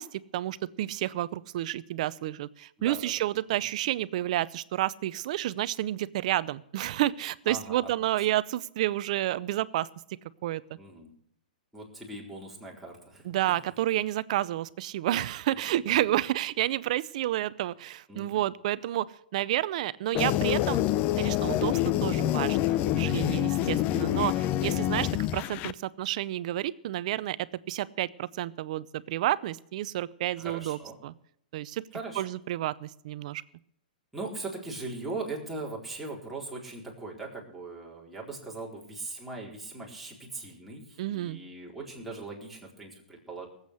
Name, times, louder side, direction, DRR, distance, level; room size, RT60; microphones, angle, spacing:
voice 1, 0.0-9.9 10.4-10.6 13.2-20.8 21.2-31.1 31.5-31.8 32.2-33.4 41.0-41.4, right 14 dB, 55° right, 19 dB, 0.6 m, -30 dB
voice 2, 7.5-7.9 8.2-8.3 10.8-11.1 11.7-13.4 15.7-16.0 18.1-18.4 23.6-24.1 30.4-31.0 31.9-32.2 34.1-43.5, right 3 dB, 5° right, -4 dB, 4.2 m, -40 dB
sound 1, 20.1-25.7, left 14 dB, 35° left, 0.6 m, -27 dB
19.0 x 8.2 x 6.4 m, 0.71 s
hypercardioid pair, 130°, 5 cm